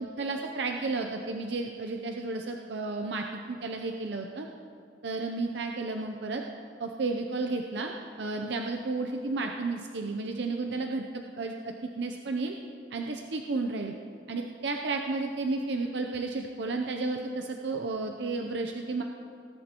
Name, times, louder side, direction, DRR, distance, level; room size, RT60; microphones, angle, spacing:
voice 1, 0.2-4.5 5.0-6.4 6.8-12.5 12.9-13.9 14.3-19.0, right 3 dB, 65° right, 3 dB, 0.6 m, -32 dB
17.5 x 11.0 x 3.0 m, 2.4 s
head